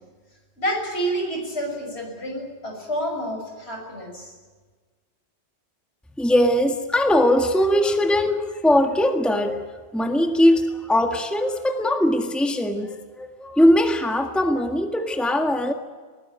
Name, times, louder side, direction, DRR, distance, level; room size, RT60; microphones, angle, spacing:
voice 1, 0.6-4.3, right 1 dB, 70° left, 2 dB, 6.8 m, -29 dB
voice 2, 6.2-9.6 9.9-15.7, left 1 dB, ahead, 4 dB, 1.6 m, -20 dB
20.5 x 19.5 x 9.6 m, 1.4 s
omnidirectional pair, 1.1 m